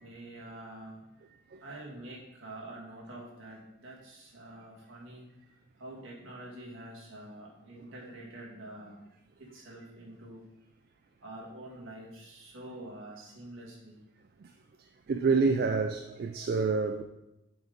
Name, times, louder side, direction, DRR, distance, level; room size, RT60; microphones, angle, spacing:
voice 1, 0.0-1.1 1.6-5.3 5.8-9.1 9.4-10.4 11.2-14.0, right 1 dB, 65° right, 2.0 m, -46 dB
voice 2, 15.1-17.0, right 4 dB, 45° right, 0.3 m, -27 dB
7.7 x 4.0 x 5.2 m
head